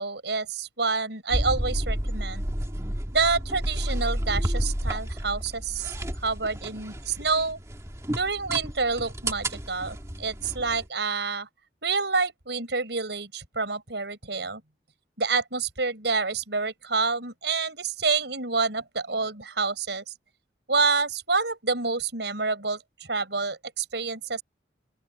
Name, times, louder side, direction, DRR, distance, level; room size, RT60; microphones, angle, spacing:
voice 1, 0.0-2.5 3.1-6.0 6.2-7.6 8.2-11.5 11.8-14.6 15.2-20.1 20.7-22.8 23.1-24.4, right 4 dB, 80° right, 5.4 m, -28 dB
sound 1, 1.3-10.9, right 1 dB, 15° right, 1.7 m, -31 dB
open air
head